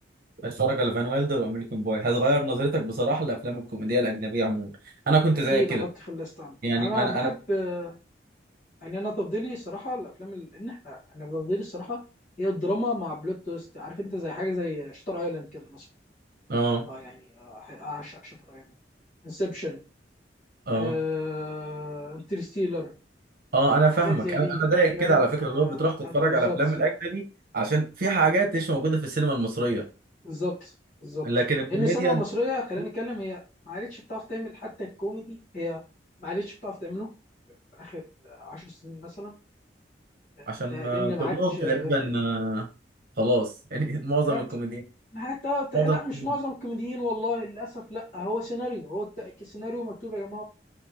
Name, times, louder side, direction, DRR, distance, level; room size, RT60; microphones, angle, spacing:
voice 1, 0.4-4.7 5.1-5.8 6.6-7.3 16.5-16.9 20.7-20.9 23.5-27.3 27.5-29.8 31.2-32.2 40.5-42.7 43.2-44.8 45.7-46.3, right 2 dB, 55° right, 1 dB, 0.9 m, -25 dB
voice 2, 5.3-8.0 8.8-12.0 12.4-15.8 16.9-18.6 19.2-19.8 20.7-22.9 23.9-24.6 25.0-25.2 25.5-26.6 30.2-30.7 31.0-31.2 31.7-33.4 33.7-35.8 36.2-37.1 37.7-39.3 40.4-41.9 44.3-44.4 45.1-50.4, left 1 dB, 45° left, -7 dB, 1.6 m, -32 dB
3.4 x 3.2 x 3.5 m, 0.32 s
head